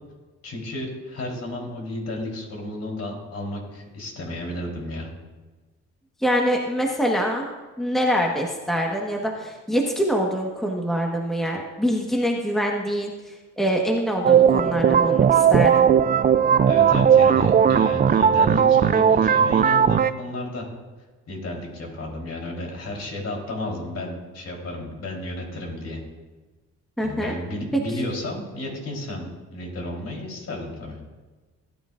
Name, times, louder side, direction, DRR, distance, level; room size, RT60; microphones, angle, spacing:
voice 1, 0.4-5.1 16.7-20.7 21.3-26.0 27.0-31.0, left 1 dB, 55° left, 0 dB, 4.0 m, -32 dB
voice 2, 6.2-7.5 7.8-15.9 27.0-27.3, equal, ahead, 0 dB, 1.4 m, -24 dB
sound 1, 14.2-20.1, right 8 dB, 30° right, 0.4 m, -17 dB
17.5 x 10.5 x 2.6 m, 1.3 s
cardioid pair, 90°, 30 cm